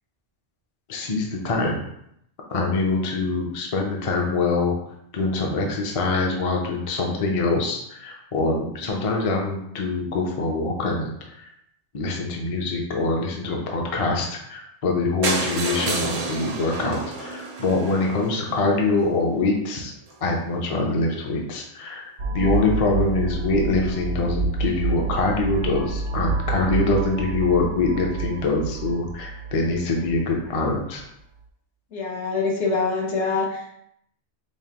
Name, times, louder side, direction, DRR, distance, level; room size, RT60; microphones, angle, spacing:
voice 1, 0.9-1.8 2.5-4.8 5.1-11.1 11.4-11.5 11.9-19.9 20.2-31.0, left 3 dB, 40° left, 0 dB, 0.5 m, -24 dB
sound 1, 15.2-19.1 19.8-19.9 20.1-20.2 20.5-20.6 20.8-20.9, right 3 dB, 60° right, 0.4 m, -30 dB
sound 2, 22.2-30.8, right 4 dB, 85° right, 0.9 m, -28 dB
voice 2, 31.9-33.7, left 4 dB, 75° left, -2 dB, 1.2 m, -25 dB
5.1 x 2.1 x 2.8 m, 0.74 s
omnidirectional pair, 1.2 m